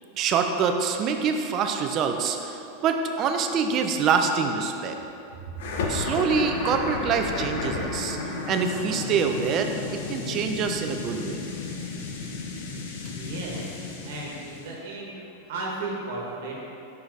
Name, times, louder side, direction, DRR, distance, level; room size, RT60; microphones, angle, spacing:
voice 1, 0.2-5.0 5.9-8.2 8.5-11.4, right 6 dB, 35° right, 5 dB, 0.5 m, -25 dB
sound 1, 5.6-14.7, left 3 dB, 75° left, 0.8 m, -32 dB
voice 2, 13.1-13.7 14.0-15.1 15.5-16.6, right 2 dB, 75° right, -3 dB, 1.3 m, -34 dB
5.6 x 5.0 x 4.0 m, 2.8 s
supercardioid pair, 150°, 0 cm